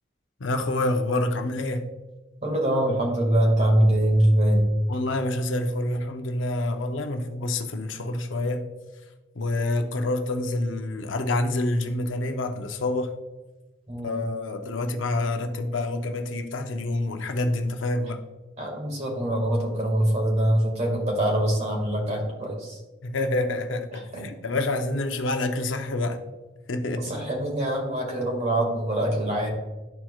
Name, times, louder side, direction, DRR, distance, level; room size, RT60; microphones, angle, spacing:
voice 1, 0.4-1.9 4.9-8.6 9.4-13.1 14.0-18.2 23.0-26.2 26.7-27.1, left 2 dB, 80° left, 6 dB, 0.7 m, -27 dB
voice 2, 2.4-4.6 13.9-14.3 18.6-22.8 23.9-24.2 27.0-29.5, right 1 dB, 40° right, 0 dB, 2.0 m, -23 dB
12.0 x 4.4 x 2.4 m, 1.1 s
head